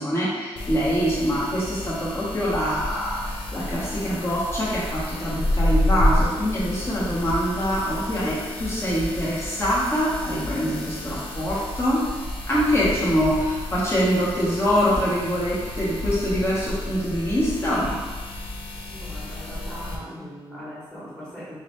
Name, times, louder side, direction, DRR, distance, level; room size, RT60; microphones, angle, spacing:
voice 1, 0.0-12.0 12.5-18.0, equal, 25° left, -7 dB, 1.3 m, -24 dB
sound 1, 0.6-20.0, left 1 dB, 65° left, 0.5 m, -30 dB
voice 2, 18.9-21.6, equal, 10° left, -9 dB, 1.5 m, -39 dB
3.2 x 2.7 x 3.1 m, 1.3 s
cardioid pair, 85°, 10 cm